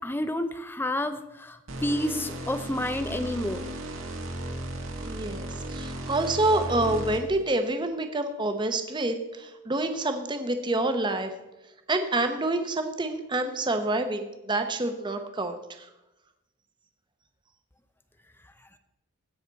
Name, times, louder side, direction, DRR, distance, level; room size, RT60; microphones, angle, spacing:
voice 1, 0.0-3.6, left 1 dB, 10° left, 9 dB, 0.5 m, -30 dB
sound 1, 1.7-7.4, right 1 dB, 70° right, 1.6 m, -35 dB
voice 2, 5.0-5.4 5.7-11.3 11.9-15.6, right 2 dB, 20° right, 7 dB, 0.8 m, -27 dB
17.0 x 6.0 x 4.0 m, 0.96 s
head